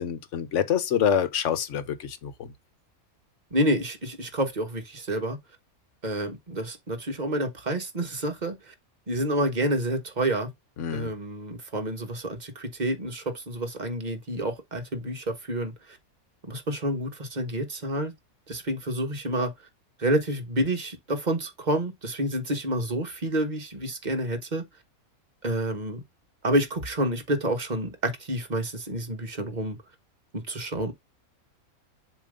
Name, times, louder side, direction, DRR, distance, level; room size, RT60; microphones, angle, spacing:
voice 1, 0.0-2.5 10.8-11.1, left 8 dB, 60° left, 1.2 m, -26 dB
voice 2, 3.5-5.4 6.0-8.7 9.1-10.5 10.9-15.7 16.5-18.1 18.5-19.5 20.0-24.7 25.4-26.0 26.4-29.8 30.3-30.9, right 1 dB, 30° right, 1.4 m, -28 dB
7.2 x 3.2 x 5.1 m
omnidirectional pair, 1.5 m